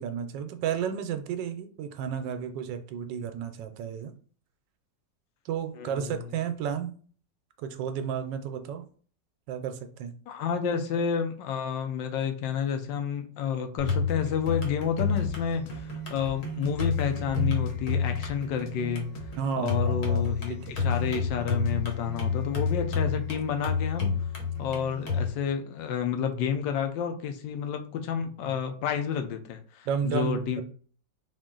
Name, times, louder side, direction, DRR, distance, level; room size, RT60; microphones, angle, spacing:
voice 1, 0.0-4.1 5.4-6.9 7.6-8.8 9.5-10.1 19.4-20.7 28.4-28.5 29.8-30.6, right 7 dB, 80° right, 8 dB, 1.2 m, -32 dB
voice 2, 5.8-6.2 10.3-19.1 19.6-24.1 24.6-30.6, left 7 dB, 85° left, 6 dB, 1.4 m, -30 dB
sound 1, 13.8-25.3, left 5 dB, 50° left, 1.2 m, -30 dB
sound 2, 15.2-15.3 15.7-15.8 16.2-16.3 16.6-18.3 18.7-18.8 19.1-19.3 19.6-19.8 20.1-20.3 20.7-22.2 22.7-23.1, left 2 dB, 70° left, 1.0 m, -44 dB
3.8 x 2.5 x 3.7 m, 0.43 s
omnidirectional pair, 1.9 m